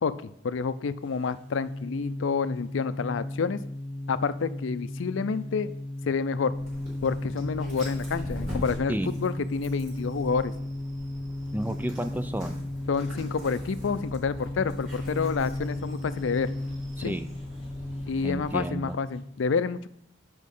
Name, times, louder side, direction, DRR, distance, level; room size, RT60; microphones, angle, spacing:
voice 1, 0.0-3.6 4.1-5.7 6.0-6.5 7.0-10.5 12.9-16.5 17.0-17.2 18.1-19.9, left 5 dB, 80° left, 14 dB, 0.4 m, -29 dB
sound 1, 1.0-19.3, left 1 dB, 30° left, 1.1 m, -35 dB
Dog, 6.5-18.6, equal, 45° right, 4.0 m, -43 dB
voice 2, 11.5-12.6 17.0-17.3 18.2-19.0, right 1 dB, 10° right, 9 dB, 0.3 m, -31 dB
8.5 x 5.2 x 5.4 m, 0.72 s
head